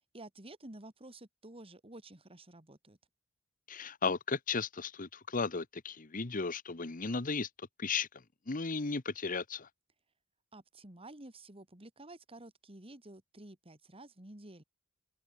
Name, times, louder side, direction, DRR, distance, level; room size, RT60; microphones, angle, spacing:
voice 1, 0.1-3.0 10.5-14.6, right 1 dB, 30° right, 2.9 m, -51 dB
voice 2, 3.7-7.5 7.8-8.1 8.5-9.7, left 4 dB, 40° left, 1.1 m, -35 dB
open air
head